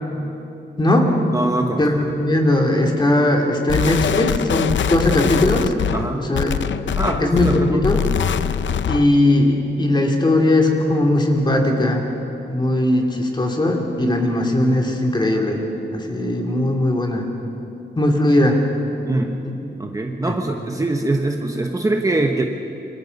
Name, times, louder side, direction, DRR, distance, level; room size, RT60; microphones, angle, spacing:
voice 1, 0.8-1.1 1.8-5.7 6.1-6.6 7.2-8.0 8.9-12.0 12.5-15.6 15.9-17.3 18.0-18.6 19.4-19.5 20.2-20.4, left 1 dB, 25° left, 1 dB, 2.9 m, -18 dB
voice 2, 1.3-1.9 5.9-6.3 7.0-8.0 19.0-19.4 19.8-22.4, right 2 dB, 20° right, 3 dB, 1.1 m, -23 dB
sound 1, 3.7-9.2, left 8 dB, 90° left, 0.7 m, -23 dB
27.5 x 25.5 x 5.4 m, 2.9 s
wide cardioid pair, 160°, 19 cm